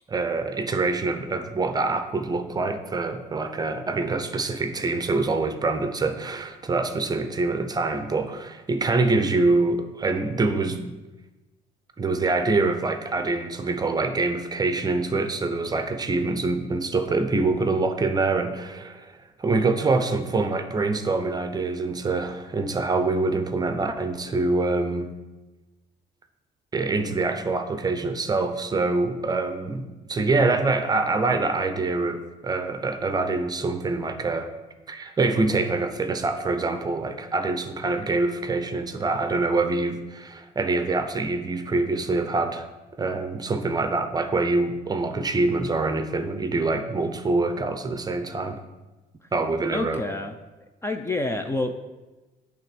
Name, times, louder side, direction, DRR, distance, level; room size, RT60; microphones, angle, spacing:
voice 1, 0.1-10.9 12.0-19.1 19.4-25.1 26.7-34.5 34.9-42.7 43.0-48.6 49.3-50.0, right 3 dB, 25° right, 8 dB, 0.7 m, -25 dB
voice 2, 49.7-50.3 50.8-51.8, left 2 dB, 15° left, 6 dB, 0.5 m, -28 dB
8.9 x 3.5 x 6.8 m, 1.1 s
cardioid pair, 110°, 17 cm